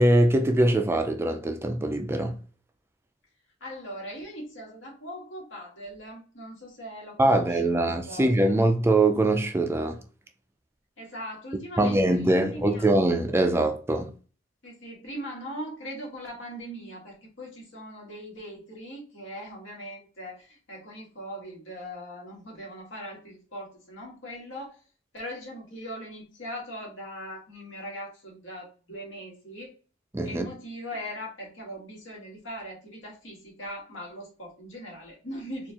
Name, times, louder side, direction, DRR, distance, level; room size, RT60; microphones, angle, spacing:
voice 1, 0.0-2.4 7.2-10.0 11.8-14.1 30.1-30.5, right 1 dB, 15° right, 0.3 m, -22 dB
voice 2, 3.6-8.6 11.0-12.9 14.0-14.1 14.6-24.8 25.1-29.7 30.2-35.7, equal, 80° left, 1.6 m, -40 dB
4.3 x 2.4 x 2.8 m
head